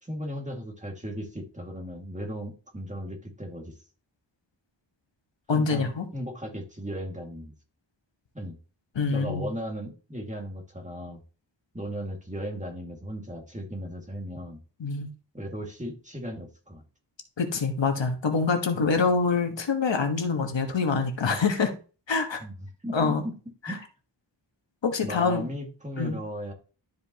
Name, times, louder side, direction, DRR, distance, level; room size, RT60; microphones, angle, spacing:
voice 1, 0.0-3.7 5.5-7.5 8.3-8.6 9.1-11.2 11.7-14.6 15.3-16.8 22.4-22.5 22.8-23.3 23.7-23.8 25.0-26.5, equal, 15° right, 1 dB, 2.0 m, -36 dB
voice 2, 5.5-6.1 8.9-9.5 14.8-15.1 17.4-21.7 22.1-22.4 22.9-23.2 23.6-23.8 24.8-25.4 26.0-26.1, left 4 dB, 70° left, 5 dB, 1.4 m, -25 dB
12.5 x 5.2 x 2.9 m, 0.36 s
wide cardioid pair, 100°, 45 cm